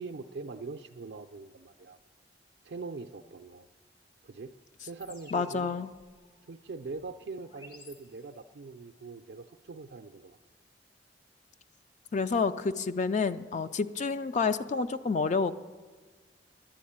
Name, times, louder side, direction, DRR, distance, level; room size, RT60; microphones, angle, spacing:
voice 1, 0.0-2.0 2.6-3.7 4.2-4.5 4.8-5.8 6.5-10.4, right 4 dB, 70° right, 6 dB, 0.4 m, -42 dB
sound 1, 5.0-8.6, left 2 dB, 60° left, 2.7 m, -56 dB
voice 2, 5.3-5.9 12.1-15.6, left 4 dB, 40° left, 11 dB, 0.4 m, -29 dB
10.5 x 10.0 x 8.6 m, 1.4 s
head